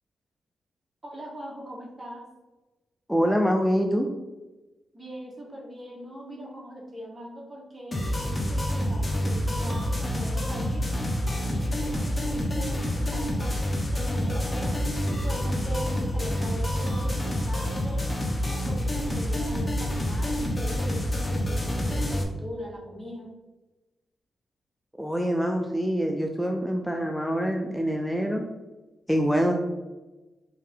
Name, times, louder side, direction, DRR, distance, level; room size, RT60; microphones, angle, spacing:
voice 1, 1.0-2.2 4.9-10.9 11.5-13.7 13.9-14.8 15.1-18.0 18.4-23.3, equal, 25° right, -2 dB, 1.3 m, -41 dB
voice 2, 3.1-4.1 25.0-28.4 29.1-29.5, equal, ahead, 2 dB, 0.4 m, -25 dB
sound 1, 7.9-22.2, equal, 25° left, 0.9 m, -27 dB
3.7 x 2.8 x 3.8 m, 1.1 s
cardioid pair, 60°, 0 cm